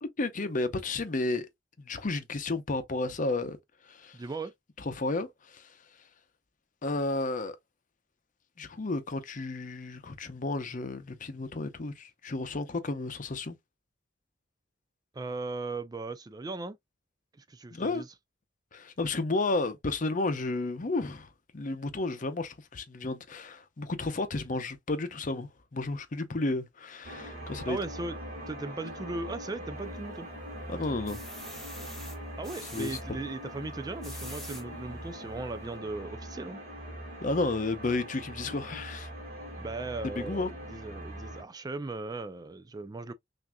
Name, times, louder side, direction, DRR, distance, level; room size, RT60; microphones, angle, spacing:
voice 1, 0.0-1.5 1.8-3.6 3.9-4.2 4.8-5.7 6.8-7.6 8.6-13.6 17.7-18.0 18.7-27.8 30.7-31.2 32.7-33.0 37.2-39.1 40.2-40.5, left 2 dB, 45° left, 0.7 m, -32 dB
voice 2, 4.1-4.5 15.1-16.8 17.4-18.1 27.7-28.2 28.5-30.3 32.4-36.6 39.6-43.1, right 3 dB, 20° right, 0.3 m, -38 dB
sound 1, 27.0-41.4, equal, 45° right, 2.0 m, -42 dB
sound 2, 29.7-30.4 30.8-33.0 33.8-34.6 35.2-35.3 35.7-35.8, left 1 dB, ahead, 1.2 m, -45 dB
5.9 x 2.6 x 2.2 m
head